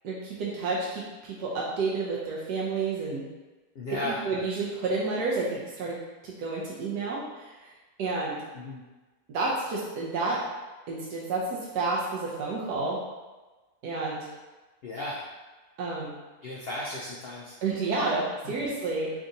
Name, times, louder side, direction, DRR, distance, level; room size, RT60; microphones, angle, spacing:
voice 1, 0.0-3.2 3.9-6.0 6.2-7.5 8.0-8.4 9.3-10.4 10.9-13.0 13.8-14.3 15.8-16.1 17.6-19.1, right 3 dB, 90° right, -5 dB, 1.2 m, -30 dB
voice 2, 3.7-4.2 8.5-8.8 14.8-15.2 16.4-17.6 18.4-18.5, left 1 dB, 85° left, -4 dB, 0.5 m, -35 dB
3.5 x 2.5 x 3.9 m, 1.2 s
omnidirectional pair, 1.7 m